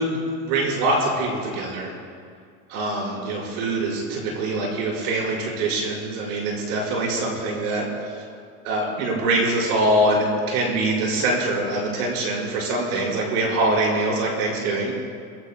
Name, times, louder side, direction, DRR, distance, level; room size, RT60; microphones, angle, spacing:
voice 1, 0.0-1.9 2.7-8.2 8.6-14.9, right 2 dB, 70° right, -3 dB, 5.3 m, -24 dB
26.0 x 21.0 x 2.3 m, 2.1 s
supercardioid pair, 130°, 44 cm